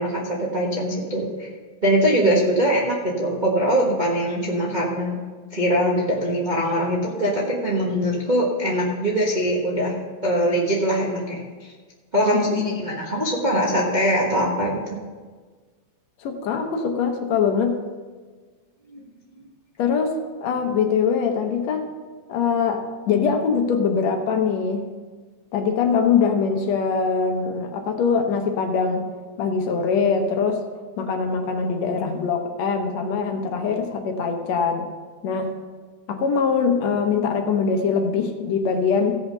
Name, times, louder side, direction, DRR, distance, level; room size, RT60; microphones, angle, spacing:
voice 1, 0.0-1.5 1.8-5.2 5.5-9.9 10.2-11.4 12.1-15.0 18.9-19.0, equal, 50° right, -4 dB, 0.5 m, -22 dB
voice 2, 12.3-12.8 16.2-17.8 19.8-21.9 22.3-24.9 25.5-29.1 29.4-30.6 31.0-34.9 35.2-35.5 36.1-39.2, left 5 dB, 70° left, 4 dB, 2.1 m, -22 dB
16.0 x 5.7 x 5.5 m, 1.5 s
omnidirectional pair, 3.3 m